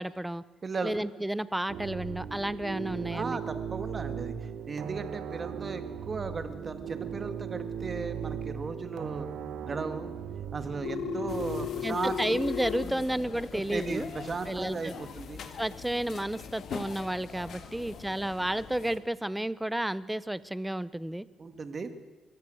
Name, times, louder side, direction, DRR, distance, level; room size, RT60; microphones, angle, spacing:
voice 1, 0.0-0.4 0.8-3.4 11.8-14.1 14.5-14.9 15.6-21.3, right 1 dB, 5° right, 18 dB, 0.8 m, -32 dB
voice 2, 0.6-0.9 3.1-9.3 9.6-10.1 10.5-12.2 12.8-13.1 13.5-15.4 17.4-17.7 21.4-21.9, right 4 dB, 35° right, 10 dB, 2.0 m, -36 dB
sound 1, 1.7-11.7, right 8 dB, 75° right, 1.4 m, -38 dB
Telephone, 10.8-12.8, left 13 dB, 80° left, 0.6 m, -35 dB
sound 2, 11.3-19.0, left 6 dB, 65° left, 1.9 m, -43 dB
23.5 x 14.5 x 7.9 m, 1.2 s
cardioid pair, 90°, 0 cm